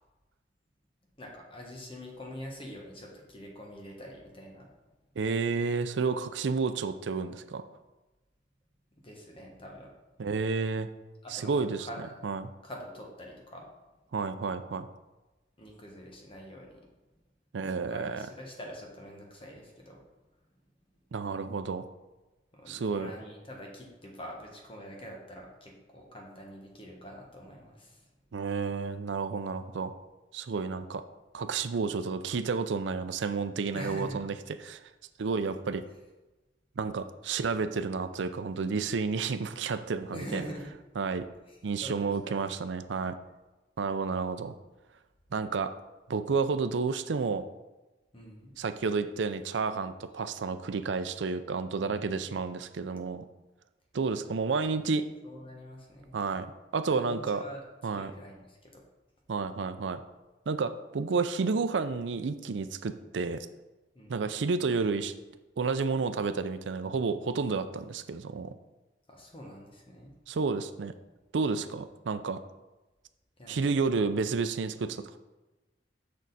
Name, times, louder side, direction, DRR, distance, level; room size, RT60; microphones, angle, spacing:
voice 1, 1.2-4.7 9.0-9.9 11.2-12.2 12.6-13.7 15.6-16.9 17.9-20.0 22.5-28.1 33.7-34.2 40.1-40.7 41.5-42.5 48.1-48.5 51.8-52.4 54.6-54.7 55.2-56.2 56.9-57.6 57.9-58.8 63.9-64.3 69.1-70.1 73.4-74.1, equal, 30° left, 0 dB, 1.4 m, -45 dB
voice 2, 5.2-7.6 10.2-10.9 11.3-11.9 12.2-12.5 14.1-14.9 17.5-18.3 21.1-21.8 22.7-23.1 28.3-29.9 30.3-31.0 31.3-34.4 34.6-34.8 35.2-35.8 36.8-40.4 41.0-41.2 41.6-43.2 43.8-44.5 45.3-45.7 46.1-47.4 48.6-53.2 53.9-55.0 56.1-56.5 56.7-57.4 57.8-58.1 59.3-60.0 60.5-63.4 64.1-65.1 65.6-68.5 70.3-70.9 71.3-72.4 73.5-75.2, right 4 dB, 80° right, 10 dB, 0.5 m, -31 dB
6.6 x 6.1 x 4.1 m, 1.1 s
head